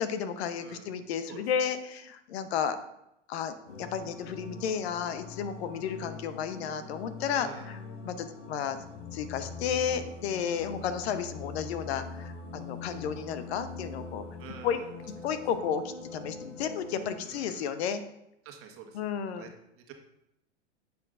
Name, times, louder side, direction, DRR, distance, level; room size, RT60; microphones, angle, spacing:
voice 1, 0.0-2.8 3.3-7.8 8.0-8.8 9.1-14.2 14.6-14.8 15.2-18.0 18.9-19.5, left 7 dB, 60° left, 11 dB, 0.8 m, -32 dB
voice 2, 0.6-0.9 1.3-1.4 7.4-7.8 14.4-14.9 17.2-17.7 18.4-19.5 19.8-19.9, right 7 dB, 40° right, 4 dB, 1.4 m, -48 dB
sound 1, 3.7-17.3, left 3 dB, 85° left, 1.2 m, -43 dB
10.5 x 7.1 x 2.5 m, 0.83 s
hypercardioid pair, 100°, 35 cm